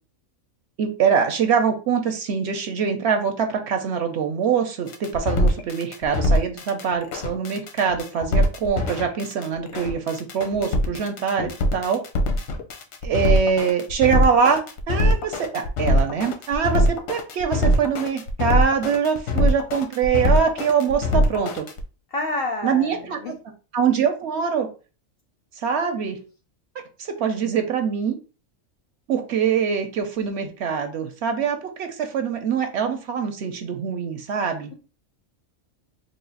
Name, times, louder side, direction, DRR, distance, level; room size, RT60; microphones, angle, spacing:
voice 1, 0.8-12.0 13.0-21.6 22.6-23.3 23.7-24.7 25.6-26.2 27.0-28.2 29.1-34.7, right 6 dB, 65° right, 5 dB, 0.8 m, -23 dB
sound 1, 4.9-21.8, left 1 dB, 85° left, 1.1 m, -22 dB
voice 2, 22.1-23.3, left 2 dB, 65° left, 3 dB, 0.6 m, -29 dB
3.3 x 2.3 x 3.9 m, 0.35 s
omnidirectional pair, 1.3 m